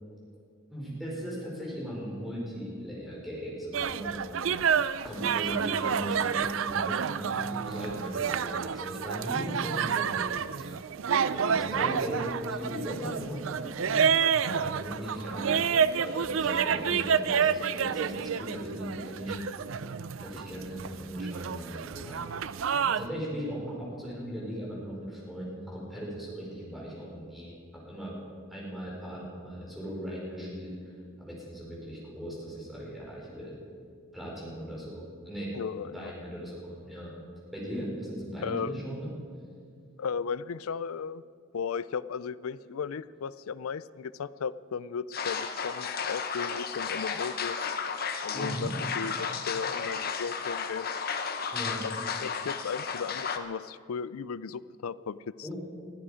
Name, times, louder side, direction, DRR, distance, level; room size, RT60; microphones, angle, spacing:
voice 1, 0.7-4.6 5.0-10.8 11.3-14.0 14.3-15.5 15.9-19.7 20.2-22.2 22.7-28.1 28.5-33.6 34.1-35.5 35.8-37.1 37.5-39.1 48.3-48.7 51.5-51.8 55.4-55.5, equal, ahead, -5 dB, 4.8 m, -38 dB
sound 1, 3.7-23.1, right 7 dB, 65° right, 0.5 m, -29 dB
voice 2, 35.5-36.1 38.4-38.7 40.0-41.2 41.5-47.6 48.2-50.9 51.8-55.5, left 6 dB, 80° left, 18 dB, 0.4 m, -36 dB
sound 2, 45.1-53.4, left 6 dB, 45° left, 0.9 m, -33 dB
20.5 x 14.0 x 5.0 m, 2.3 s
head